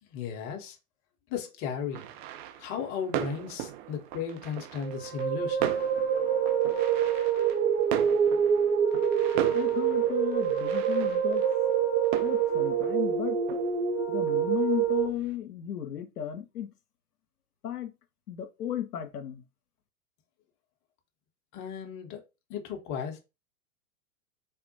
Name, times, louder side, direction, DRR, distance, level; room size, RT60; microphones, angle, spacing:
voice 1, 0.1-0.8 1.3-2.0 2.6-5.7 21.5-22.2 22.5-23.2, left 7 dB, 30° left, 0.6 m, -35 dB
sound 1, 1.9-15.3, right 12 dB, 35° right, 0.5 m, -39 dB
sound 2, 4.8-15.1, right 8 dB, 60° right, 1.0 m, -26 dB
voice 2, 9.5-11.4 12.2-13.6 14.1-16.7 17.6-17.9 18.3-19.4, left 11 dB, 90° left, 0.6 m, -34 dB
3.4 x 2.1 x 2.6 m
hypercardioid pair, 105°, 44 cm